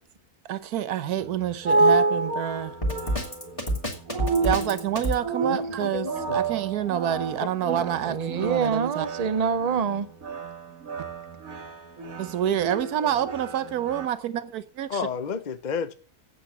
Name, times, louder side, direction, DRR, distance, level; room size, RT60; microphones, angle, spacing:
voice 1, 0.5-2.7 4.4-9.1 12.2-15.1, right 10 dB, 90° right, 1.3 m, -28 dB
sound 1, 1.2-14.1, right 3 dB, 65° right, 1.9 m, -29 dB
Drum kit, 2.8-5.2, equal, 20° left, 2.6 m, -27 dB
voice 2, 5.4-6.4 14.9-15.9, left 6 dB, 50° left, 0.5 m, -31 dB
voice 3, 7.7-10.1, right 6 dB, 40° right, 0.6 m, -26 dB
8.7 x 8.1 x 8.4 m
omnidirectional pair, 1.6 m